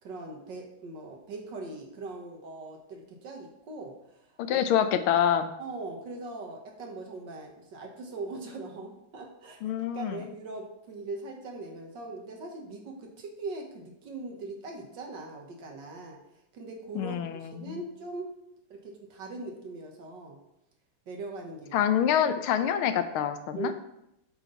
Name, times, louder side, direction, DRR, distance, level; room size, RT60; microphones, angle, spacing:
voice 1, 0.0-3.9 4.5-4.6 5.6-16.2 16.5-18.4 18.7-20.4 21.1-21.8 23.6-23.7, right 3 dB, 60° right, 1 dB, 1.9 m, -40 dB
voice 2, 4.4-5.5 9.6-10.2 16.9-17.8 21.7-23.7, left 9 dB, 85° left, 10 dB, 1.6 m, -26 dB
8.2 x 5.9 x 4.0 m, 0.82 s
omnidirectional pair, 2.3 m